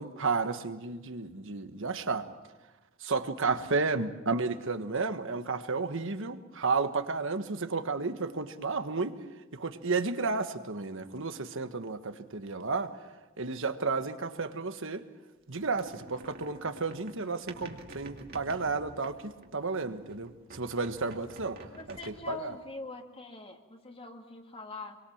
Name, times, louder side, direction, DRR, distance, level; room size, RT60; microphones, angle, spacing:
voice 1, 0.0-2.3 3.0-9.2 9.5-12.9 13.4-15.0 15.5-21.6 21.9-22.5, right 4 dB, 65° right, 9 dB, 1.4 m, -32 dB
sound 1, 15.5-19.7 20.1-22.5, right 2 dB, 50° right, 2.5 m, -49 dB
voice 2, 21.7-25.0, left 3 dB, 30° left, 4 dB, 2.2 m, -43 dB
26.5 x 23.0 x 7.3 m, 1.1 s
head